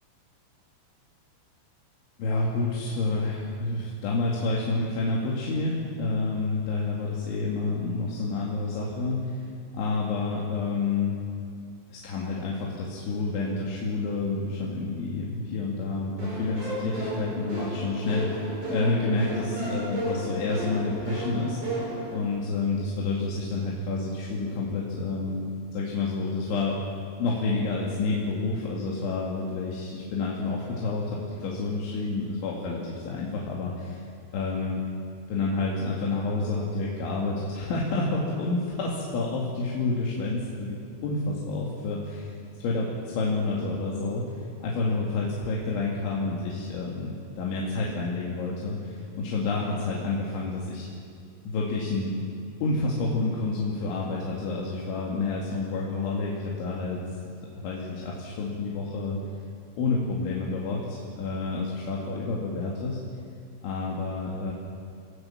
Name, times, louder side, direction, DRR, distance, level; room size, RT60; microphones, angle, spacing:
voice 1, 2.2-9.4 9.7-11.2 11.9-25.5 25.7-26.8 27.2-34.0 34.3-34.8 35.3-44.3 44.6-47.1 47.4-50.9 51.5-52.1 52.6-57.2 57.6-59.2 59.8-63.0 63.6-64.5, left 3 dB, 75° left, -4 dB, 4.8 m, -29 dB
sound 1, 16.2-22.2, right 1 dB, 40° right, 7.6 m, -33 dB
29.5 x 18.5 x 7.3 m, 2.3 s
omnidirectional pair, 5.4 m